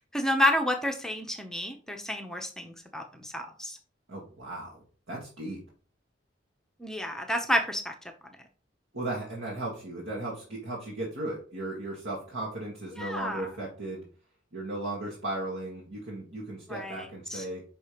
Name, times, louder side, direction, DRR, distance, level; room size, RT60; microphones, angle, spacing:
voice 1, 0.1-3.8 6.8-7.9 12.9-13.5 16.7-17.4, left 1 dB, 5° left, 3 dB, 0.7 m, -30 dB
voice 2, 4.1-5.6 8.9-14.1 14.5-17.6, right 2 dB, 70° right, -4 dB, 1.7 m, -36 dB
5.5 x 4.4 x 5.1 m, 0.39 s
head